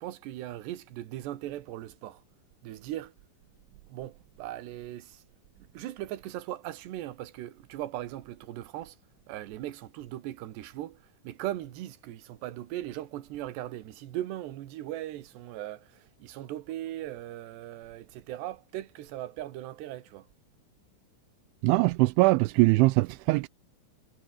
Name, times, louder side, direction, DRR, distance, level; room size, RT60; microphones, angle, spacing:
voice 1, 0.0-2.2 2.6-3.1 3.9-5.2 5.6-8.9 9.3-11.0 11.2-20.3, right 14 dB, 65° right, 3.4 m, -39 dB
voice 2, 21.6-23.5, right 23 dB, 85° right, 2.8 m, -22 dB
omnidirectional pair, 5.8 m